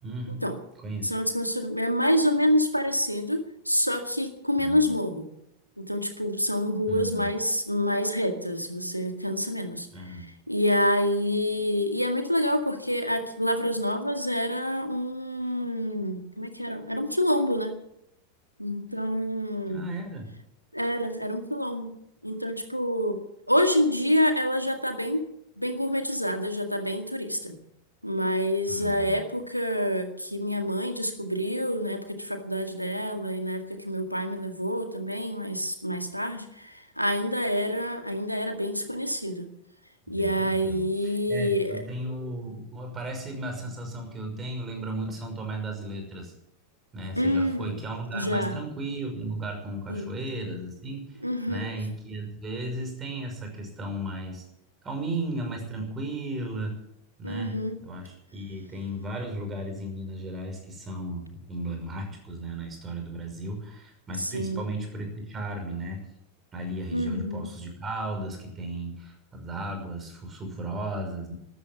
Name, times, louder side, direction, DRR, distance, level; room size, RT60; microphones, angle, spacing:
voice 1, 0.0-0.4 0.8-1.2 4.6-4.9 6.9-7.3 9.9-10.3 19.7-20.3 28.7-29.2 40.1-46.3 46.9-51.2 51.5-54.5 54.8-56.7 57.2-57.5 57.8-66.0 66.5-71.3, right 1 dB, 20° right, 3 dB, 6.0 m, -35 dB
voice 2, 1.0-5.3 5.8-17.8 18.6-19.8 20.7-22.0 22.2-23.2 23.5-25.2 25.6-27.6 28.0-39.5 40.1-41.8 47.1-47.8 48.1-48.6 49.9-50.1 51.2-51.7 57.2-57.8 64.2-64.6 66.9-67.5, equal, 90° left, 6 dB, 2.0 m, -27 dB
13.5 x 12.5 x 8.4 m, 0.78 s
figure-of-eight pair, 90°, 0 cm